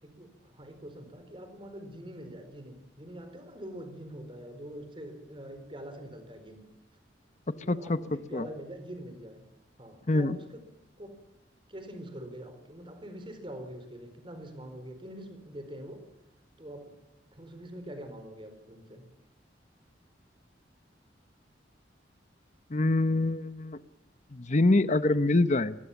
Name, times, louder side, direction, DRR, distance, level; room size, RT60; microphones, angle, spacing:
voice 1, 0.0-6.7 7.6-9.4 9.8-10.6 11.0-11.1 11.7-16.1 16.6-16.9 17.3-19.1, right 1 dB, 25° right, 8 dB, 4.3 m, -44 dB
voice 2, 7.7-8.0 8.3-8.5 10.1-10.4 22.7-23.8 24.3-25.8, left 2 dB, 40° left, 13 dB, 0.8 m, -25 dB
24.5 x 20.5 x 7.2 m, 0.86 s
head